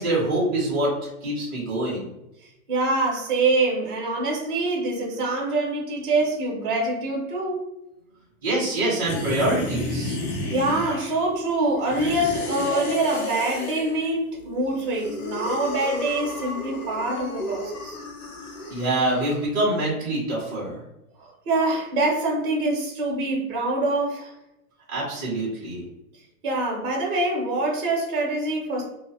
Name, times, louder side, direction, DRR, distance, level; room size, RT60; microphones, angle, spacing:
voice 1, 0.0-2.1 8.4-10.2 18.7-20.8 24.9-25.8, right 1 dB, 15° right, -9 dB, 0.4 m, -25 dB
voice 2, 2.7-7.6 10.5-18.0 21.2-24.3 26.4-28.8, right 2 dB, 35° right, -3 dB, 0.8 m, -25 dB
sound 1, 9.1-11.3 11.8-14.1 14.7-19.5, left 2 dB, 80° left, 0.8 m, -32 dB
2.7 x 2.0 x 2.6 m, 0.89 s
hypercardioid pair, 165°, 44 cm